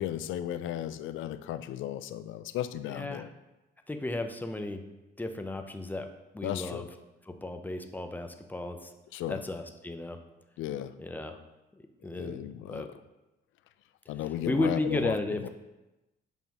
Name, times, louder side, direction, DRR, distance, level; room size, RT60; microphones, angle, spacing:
voice 1, 0.0-3.3 6.4-6.9 9.1-9.4 10.6-10.9 12.0-12.9 14.1-15.2 15.4-15.5, left 12 dB, 85° left, 12 dB, 0.4 m, -35 dB
voice 2, 2.9-3.2 3.9-4.8 5.2-6.1 6.3-6.9 7.3-8.9 9.3-10.2 11.0-11.4 11.7-12.4 12.7-12.9 14.5-15.5, left 2 dB, 10° left, 6 dB, 0.6 m, -34 dB
7.2 x 5.4 x 3.0 m, 1.0 s
cardioid pair, 90°, 20 cm